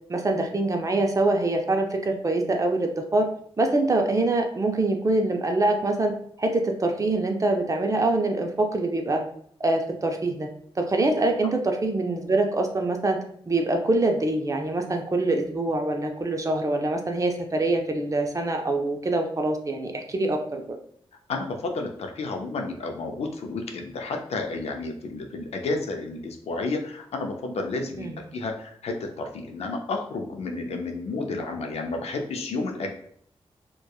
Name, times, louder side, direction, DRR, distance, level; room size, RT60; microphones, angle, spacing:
voice 1, 0.1-3.3 3.6-9.2 9.6-10.5 10.8-13.2 13.5-20.8 28.0-28.2, right 2 dB, 30° right, 3 dB, 0.5 m, -24 dB
voice 2, 21.3-32.9, left 3 dB, 80° left, 3 dB, 0.4 m, -31 dB
2.7 x 2.2 x 2.3 m, 0.64 s
cardioid pair, 60°, 11 cm